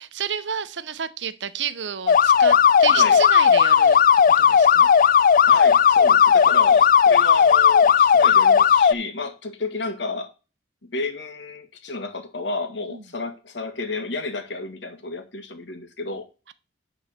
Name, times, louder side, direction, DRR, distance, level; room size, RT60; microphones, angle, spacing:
voice 1, 0.0-4.0 4.4-4.9 12.9-13.0, right 7 dB, 75° right, 0.9 m, -31 dB
sound 1, 2.1-8.9, left 7 dB, 50° left, 0.4 m, -15 dB
voice 2, 2.9-3.2 5.5-10.3 10.9-16.3, left 3 dB, 70° left, 1.8 m, -32 dB
10.5 x 4.0 x 6.6 m
head